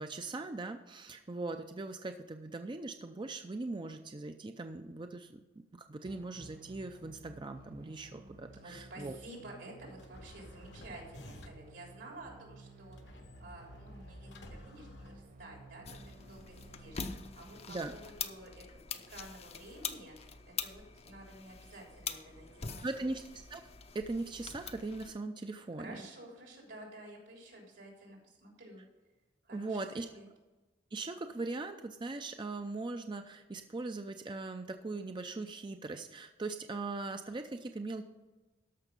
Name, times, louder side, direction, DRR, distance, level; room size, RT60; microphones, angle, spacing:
voice 1, 0.0-5.4 5.7-9.2 17.7-17.9 22.8-23.2 23.5-23.6 23.9-26.0 29.5-30.1 30.9-38.1, right 3 dB, 25° right, 7 dB, 0.5 m, -40 dB
sound 1, 6.0-18.0, right 2 dB, 55° right, 1.4 m, -55 dB
voice 2, 8.6-20.3 20.6-22.9 25.8-28.8 29.4-30.3, right 1 dB, 80° right, -1 dB, 3.6 m, -51 dB
sound 2, 10.0-11.8 12.9-15.8, left 1 dB, 70° left, 1.2 m, -53 dB
sound 3, 15.8-25.1, left 6 dB, 35° left, 0.6 m, -44 dB
13.5 x 5.8 x 5.2 m, 1.2 s
head